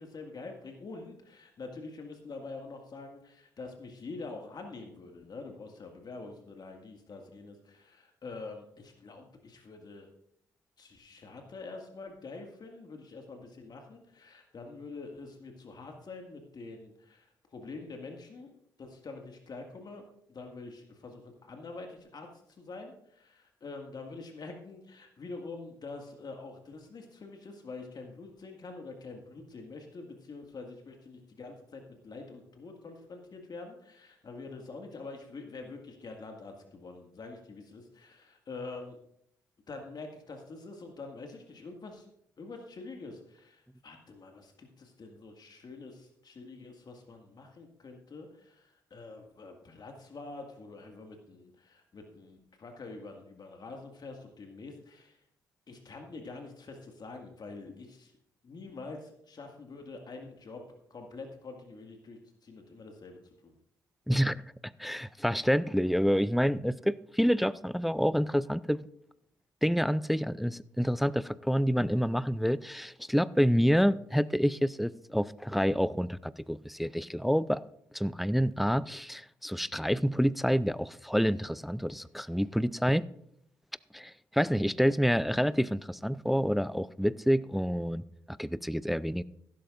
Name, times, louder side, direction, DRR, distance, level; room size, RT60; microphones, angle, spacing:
voice 1, 0.0-10.1 10.8-18.5 18.8-20.0 20.3-22.3 22.6-39.0 39.7-42.1 42.4-55.2 55.7-58.1 58.4-60.6 60.9-63.5, left 3 dB, 45° left, 1.9 m, -46 dB
voice 2, 64.1-64.4 64.8-68.8 69.6-77.6 77.9-83.1 83.9-89.2, equal, ahead, 0.4 m, -28 dB
15.5 x 12.5 x 2.5 m
figure-of-eight pair, 40°, 10 cm